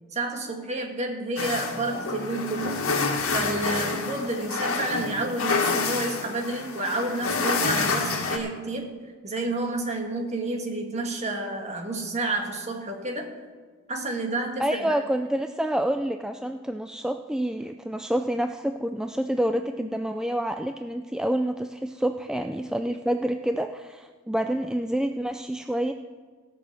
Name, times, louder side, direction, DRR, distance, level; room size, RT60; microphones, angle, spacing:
voice 1, 0.1-3.0 3.3-13.3 13.9-14.9, right 2 dB, 35° right, 3 dB, 1.6 m, -30 dB
sound 1, 1.4-8.4, left 4 dB, 85° left, 1.7 m, -28 dB
voice 2, 14.6-25.9, right 1 dB, 5° right, 7 dB, 0.3 m, -28 dB
17.0 x 6.3 x 6.4 m, 1.5 s
head